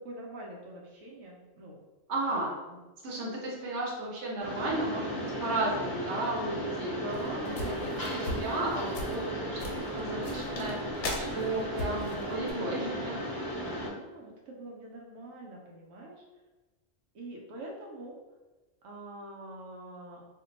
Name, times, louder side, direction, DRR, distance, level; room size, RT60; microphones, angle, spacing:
voice 1, 0.0-1.8 7.0-8.1 13.6-16.3 17.1-18.2 18.8-20.2, right 1 dB, 85° right, -1 dB, 1.0 m, -44 dB
voice 2, 2.1-2.5 3.0-6.9 7.4-7.7 8.2-9.6 9.9-10.9 11.2-13.2, right 2 dB, 65° right, -3 dB, 1.0 m, -33 dB
Mechanisms, 4.4-13.9, equal, 30° left, 0.4 m, -35 dB
sound 1, 7.1-12.5, left 1 dB, 70° left, 0.9 m, -39 dB
2.6 x 2.2 x 3.8 m, 1.2 s
omnidirectional pair, 1.4 m